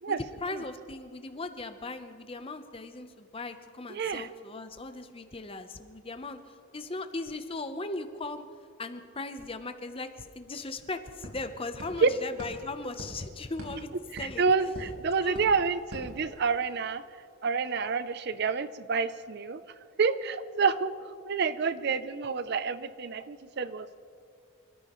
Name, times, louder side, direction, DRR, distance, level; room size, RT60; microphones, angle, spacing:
voice 1, 0.1-8.5 8.8-13.9 14.2-14.4 15.2-15.4, left 2 dB, 25° left, 9 dB, 0.8 m, -38 dB
voice 2, 3.9-4.3 12.0-12.1 14.1-17.0 17.4-19.6 20.0-20.9 21.3-24.0, right 5 dB, 50° right, 13 dB, 0.5 m, -28 dB
sound 1, 10.2-10.3 10.4-16.9, equal, 75° right, 4.2 m, -46 dB
26.5 x 14.0 x 3.1 m, 2.3 s
head